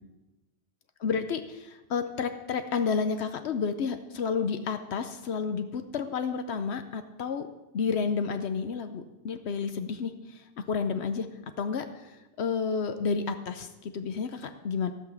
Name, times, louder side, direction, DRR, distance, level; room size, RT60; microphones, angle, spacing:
voice 1, 1.0-7.5 7.7-11.3 11.6-14.9, left 5 dB, 75° left, 8 dB, 1.0 m, -31 dB
16.0 x 6.0 x 7.1 m, 1.0 s
omnidirectional pair, 1.1 m